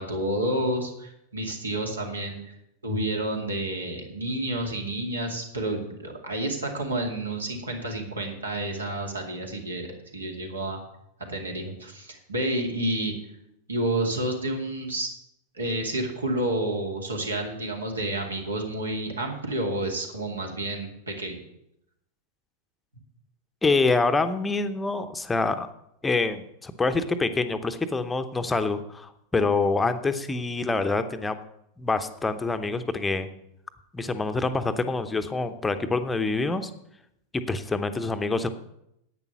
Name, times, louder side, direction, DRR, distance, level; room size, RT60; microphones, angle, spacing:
voice 1, 0.0-2.5 2.8-10.8 11.3-13.1 13.7-15.1 15.5-21.4, right 1 dB, 75° right, 2 dB, 2.3 m, -30 dB
voice 2, 23.6-25.7 26.0-31.4 31.8-33.3 33.9-36.7 37.3-38.5, left 3 dB, 10° left, 9 dB, 0.8 m, -26 dB
11.0 x 8.8 x 6.0 m, 0.79 s
figure-of-eight pair, 90°, 0 cm